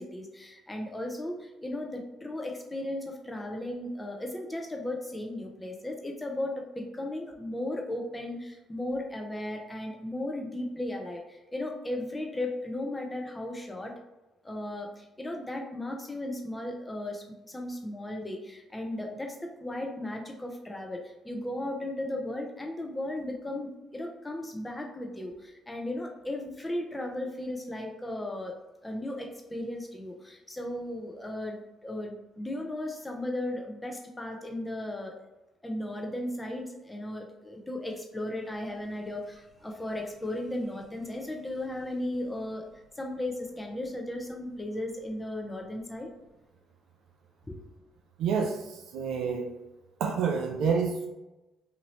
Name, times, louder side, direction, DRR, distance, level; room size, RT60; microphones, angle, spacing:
voice 1, 0.0-13.9 14.4-28.5 28.8-31.6 31.8-35.1 35.6-42.7 43.0-46.1 47.5-47.6, left 1 dB, 15° left, 2 dB, 0.7 m, -36 dB
voice 2, 48.2-49.5 50.0-51.1, right 6 dB, 70° right, 2 dB, 0.4 m, -28 dB
2.9 x 2.6 x 3.0 m, 1.0 s
hypercardioid pair, 50°, 0 cm